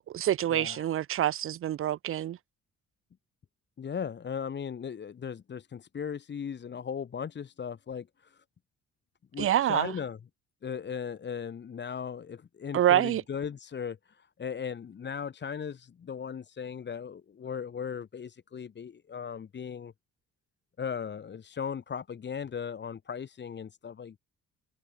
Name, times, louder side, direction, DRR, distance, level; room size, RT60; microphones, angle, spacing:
voice 1, 0.0-2.4 9.4-9.9 12.7-13.2, right 12 dB, 45° right, 0.5 m, -26 dB
voice 2, 0.5-0.9 3.8-8.4 9.3-10.2 10.6-19.9 20.8-24.2, left 7 dB, 35° left, 0.9 m, -37 dB
cardioid pair, 90°, 30 cm